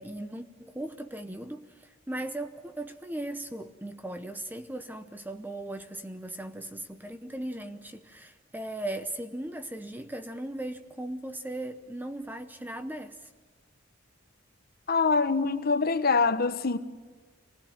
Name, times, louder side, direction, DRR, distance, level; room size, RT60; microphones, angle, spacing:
voice 1, 0.0-13.3, right 1 dB, 10° right, 0.8 m, -38 dB
voice 2, 14.9-16.8, left 4 dB, 50° left, 1.1 m, -24 dB
26.5 x 19.5 x 7.4 m
head